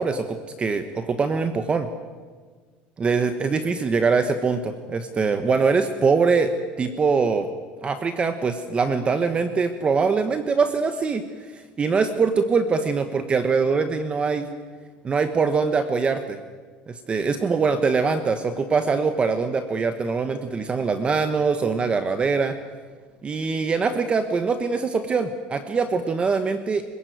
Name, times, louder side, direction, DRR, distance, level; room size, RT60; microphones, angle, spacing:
voice 1, 0.0-1.9 3.0-6.5 6.8-7.5 7.8-11.2 11.5-14.5 15.0-16.4 16.9-22.5 23.2-26.8, right 4 dB, 25° right, 9 dB, 1.3 m, -23 dB
25.5 x 15.5 x 9.4 m, 1.5 s
supercardioid pair, 120°, 4 cm